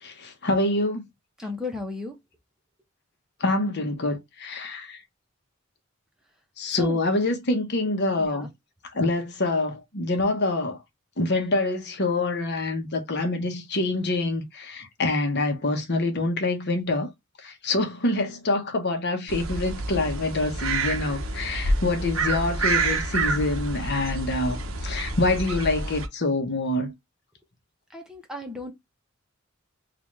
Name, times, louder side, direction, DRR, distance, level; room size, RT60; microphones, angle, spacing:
voice 1, 0.0-1.0 3.4-5.0 6.6-8.5 8.9-10.8 11.2-17.1 17.4-26.9, left 2 dB, 55° left, 1.1 m, -26 dB
voice 2, 1.4-2.2 6.7-7.0 8.2-8.5 27.9-28.7, left 3 dB, 5° right, 0.9 m, -34 dB
sound 1, 19.3-26.1, right 3 dB, 80° right, 0.8 m, -28 dB
3.9 x 2.5 x 3.0 m
head